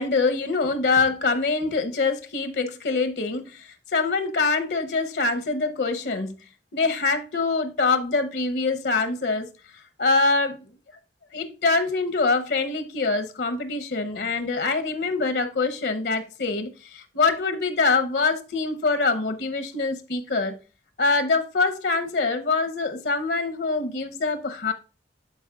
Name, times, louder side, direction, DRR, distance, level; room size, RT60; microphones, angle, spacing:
voice 1, 0.0-6.3 6.7-9.5 10.0-10.6 11.3-20.6 21.0-24.7, left 3 dB, 70° left, 0.9 m, -24 dB
12.0 x 4.4 x 2.4 m
head